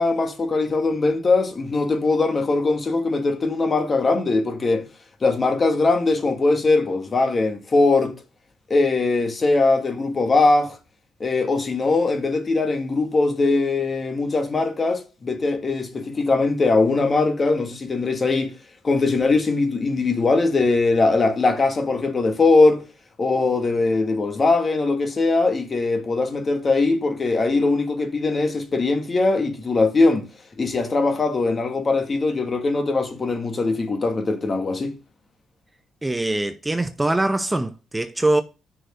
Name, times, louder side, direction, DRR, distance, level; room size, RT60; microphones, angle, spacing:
voice 1, 0.0-4.8 5.2-8.1 8.7-10.8 11.2-18.5 18.8-22.8 23.2-30.2 30.6-34.9, left 3 dB, 35° left, 1.7 m, -21 dB
voice 2, 36.0-38.4, right 2 dB, 15° right, 0.6 m, -23 dB
6.3 x 4.6 x 6.5 m
cardioid pair, 90°, 0 cm